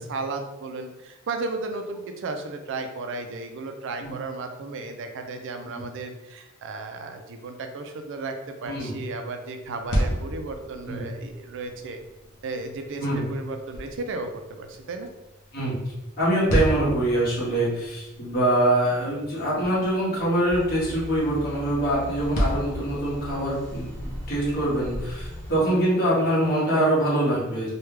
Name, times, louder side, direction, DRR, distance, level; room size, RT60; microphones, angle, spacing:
voice 1, 0.0-12.0 12.4-15.1, right 3 dB, 60° right, 6 dB, 0.4 m, -34 dB
voice 2, 8.6-8.9 10.9-11.0 13.0-13.2 15.5-15.8 16.2-27.7, right 1 dB, 50° left, -6 dB, 1.4 m, -24 dB
sound 1, 9.6-23.6, equal, 80° left, 0.7 m, -33 dB
sound 2, 20.5-25.6, left 1 dB, 5° left, 0.9 m, -38 dB
3.2 x 2.3 x 3.2 m, 0.99 s
head